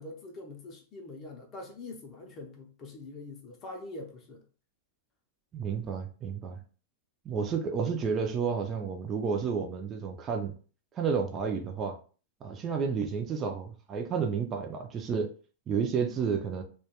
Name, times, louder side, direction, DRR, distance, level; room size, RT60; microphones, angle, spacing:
voice 1, 0.0-4.4, left 2 dB, 30° left, 0.5 m, -44 dB
voice 2, 5.5-6.6 7.3-10.5 10.9-11.9 12.4-15.3 15.7-16.6, right 6 dB, 25° right, 0.4 m, -31 dB
2.2 x 2.2 x 2.9 m
supercardioid pair, 150°, 0 cm